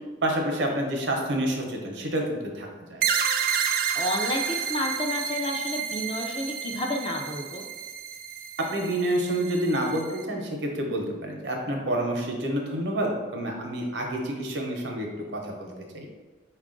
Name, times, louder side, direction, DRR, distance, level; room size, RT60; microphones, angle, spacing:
voice 1, 0.2-3.0 8.7-16.1, right 1 dB, 75° right, 1 dB, 0.8 m, -28 dB
sound 1, 3.0-10.2, right 7 dB, 50° right, 0.3 m, -30 dB
voice 2, 3.9-7.6, left 1 dB, 25° left, 1 dB, 0.5 m, -30 dB
4.6 x 2.4 x 3.7 m, 1.3 s
head